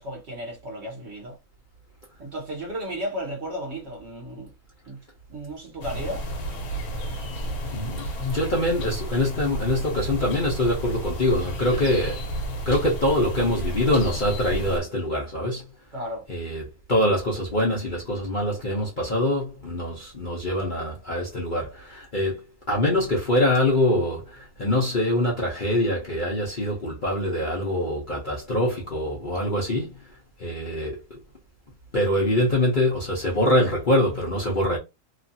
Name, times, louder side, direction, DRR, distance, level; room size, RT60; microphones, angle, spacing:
voice 1, 0.0-1.4 2.2-4.5 4.9-5.0 5.3-6.3 11.7-11.9 15.9-16.2, equal, 50° right, 1.0 m, -34 dB
sound 1, 5.8-14.8, right 1 dB, 70° left, 1.3 m, -31 dB
voice 2, 7.7-12.2 12.7-15.6 16.3-16.6 16.9-29.9 30.4-31.2 31.9-34.8, left 1 dB, 45° left, 0.7 m, -24 dB
3.0 x 2.4 x 2.6 m
omnidirectional pair, 1.7 m